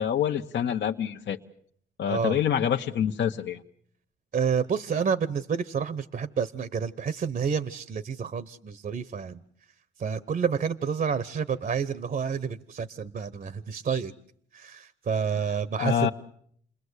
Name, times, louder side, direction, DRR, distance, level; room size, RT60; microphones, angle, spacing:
voice 1, 0.0-1.4 2.0-3.6 15.8-16.1, left 9 dB, 65° left, 1 dB, 1.2 m, -26 dB
voice 2, 2.1-2.4 4.3-9.4 10.0-14.1 14.5-16.1, right 6 dB, 45° right, 16 dB, 1.0 m, -29 dB
29.5 x 21.0 x 8.2 m, 0.65 s
cardioid pair, 90°, 20 cm